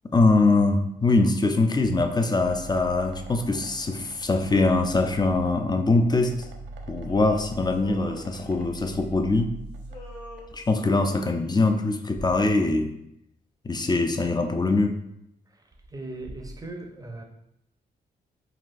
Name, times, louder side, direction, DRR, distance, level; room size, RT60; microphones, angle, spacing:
voice 1, 0.0-6.4 6.9-9.5 10.5-12.9 13.6-15.0, left 3 dB, 20° left, 0.4 m, -23 dB
sound 1, 2.4-11.0, right 2 dB, 80° right, 0.5 m, -42 dB
Male singing, 7.1-9.5 9.8-11.9, left 2 dB, 85° left, 1.0 m, -47 dB
voice 2, 15.5-17.2, right 2 dB, 20° right, 0.6 m, -39 dB
4.0 x 2.3 x 2.5 m
supercardioid pair, 50°, 18 cm